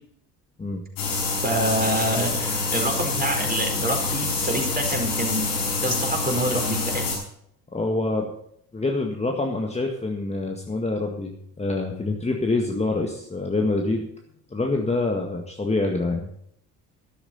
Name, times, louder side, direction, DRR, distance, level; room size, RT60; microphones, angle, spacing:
sound 1, 1.0-7.2, left 3 dB, 75° left, 5.5 m, -26 dB
voice 1, 1.3-5.5 5.8-7.0, right 1 dB, 20° right, 2 dB, 4.6 m, -27 dB
voice 2, 7.7-8.3 8.7-14.0 14.5-16.3, left 2 dB, 15° left, 1 dB, 1.8 m, -26 dB
13.5 x 12.0 x 4.2 m, 0.69 s
figure-of-eight pair, 55°, 47 cm